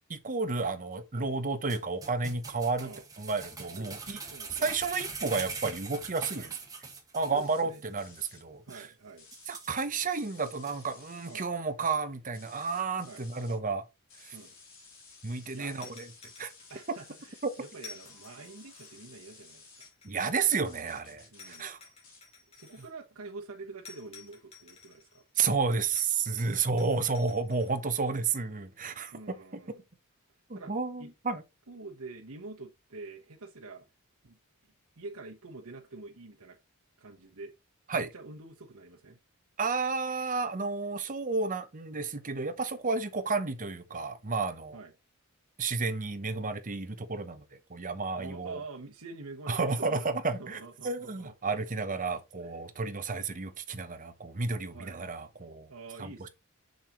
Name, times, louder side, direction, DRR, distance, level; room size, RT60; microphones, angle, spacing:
voice 1, 0.1-2.9 3.2-4.2 4.5-6.6 7.1-8.8 9.5-13.8 14.2-14.4 15.2-16.1 16.4-16.5 17.4-17.5 20.0-21.8 25.4-29.4 30.5-31.4 37.9-38.1 39.6-44.8 45.6-47.4 47.7-48.6 49.5-55.7 56.0-56.3, right 4 dB, 35° right, 0.9 m, -31 dB
sound 1, 1.7-7.4 7.7-7.8 8.2-8.3 8.7-8.8 9.3-10.1 10.7-10.8, right 4 dB, 15° right, 1.7 m, -42 dB
voice 2, 4.3-4.7 6.3-6.5 7.3-7.8 8.7-9.3 11.3-11.5 13.1-13.6 14.3-14.5 15.5-15.8 16.7-19.6 21.3-21.7 22.5-25.2 29.1-29.8 30.5-30.7 31.0-31.1 31.7-33.8 34.2-34.4 35.0-36.6 37.0-37.5 37.9-39.2 44.7-44.9 48.2-51.5 54.7-55.0 55.7-56.3, right 3 dB, 70° right, 1.2 m, -46 dB
sound 2, 7.4-7.6 8.0-8.4 9.2-9.6 10.1-11.5 12.3-13.6 14.1-19.9 20.6-21.6 22.0-22.2, left 4 dB, 65° left, 3.4 m, -55 dB
sound 3, 15.8-17.1 17.8-19.1 19.8-20.9 21.4-22.9 23.8-25.2 25.9-27.7, left 5 dB, 25° left, 2.7 m, -52 dB
6.7 x 6.5 x 3.1 m
head